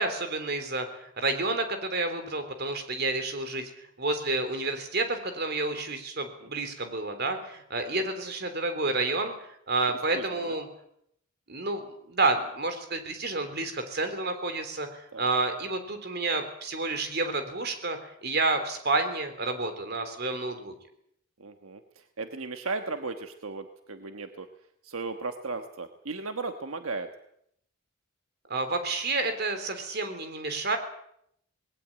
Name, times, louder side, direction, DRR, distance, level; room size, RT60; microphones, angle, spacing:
voice 1, 0.0-3.7 4.0-9.4 9.7-10.7 11.5-20.7 28.5-30.8, right 3 dB, 50° right, 8 dB, 3.5 m, -30 dB
voice 2, 10.1-10.6 15.1-15.3 21.4-24.5 24.8-27.1, right 3 dB, 75° right, 7 dB, 1.3 m, -36 dB
19.5 x 18.0 x 8.7 m, 0.72 s
head